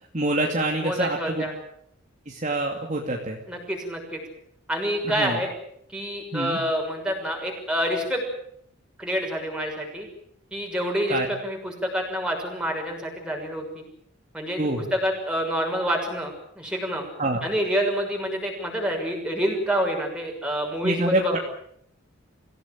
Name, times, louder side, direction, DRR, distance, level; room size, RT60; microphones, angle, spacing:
voice 1, 0.1-1.5 2.3-3.4 5.0-5.4 6.3-6.6 11.1-11.3 14.6-14.9 17.2-17.4 20.8-21.4, right 2 dB, 35° right, 1 dB, 2.6 m, -26 dB
voice 2, 0.8-1.5 3.5-4.2 4.7-5.5 5.9-8.2 9.0-10.1 10.5-13.8 14.3-14.6 14.9-17.0 17.4-21.4, equal, 5° right, 1 dB, 6.3 m, -27 dB
25.5 x 16.5 x 9.1 m, 0.70 s
head